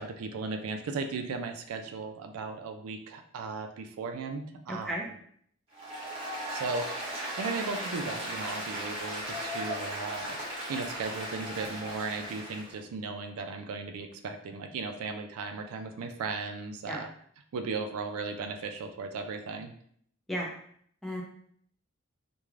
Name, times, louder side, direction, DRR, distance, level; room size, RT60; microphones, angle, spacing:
voice 1, 0.0-5.0 6.5-17.1 17.5-19.7, right 4 dB, 80° right, 6 dB, 0.3 m, -36 dB
voice 2, 4.7-5.1 16.8-17.0 20.3-20.5 21.0-21.2, equal, ahead, -2 dB, 0.4 m, -34 dB
Applause, 5.7-12.7, right 1 dB, 25° right, 0.9 m, -37 dB
2.4 x 2.2 x 3.1 m, 0.64 s
head